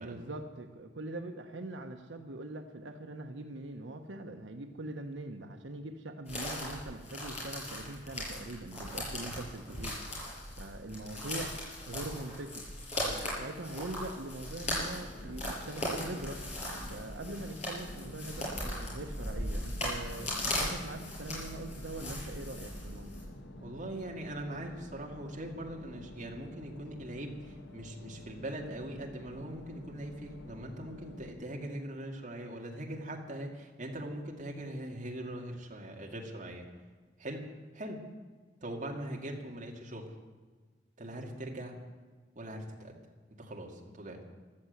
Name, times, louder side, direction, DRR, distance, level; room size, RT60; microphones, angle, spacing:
voice 1, 0.0-10.0 10.6-12.6 13.1-23.2, right 2 dB, 85° right, 4 dB, 1.1 m, -42 dB
sound 1, 6.3-23.2, left 1 dB, 35° left, 6.3 m, -38 dB
sound 2, 15.0-31.3, left 1 dB, 70° left, 1.7 m, -49 dB
voice 2, 23.6-36.6 37.2-37.4 37.7-38.0 38.6-40.1 41.0-41.8 42.4-43.0 43.4-44.2, right 1 dB, 40° right, 0 dB, 2.4 m, -41 dB
14.5 x 12.5 x 8.1 m, 1.4 s
head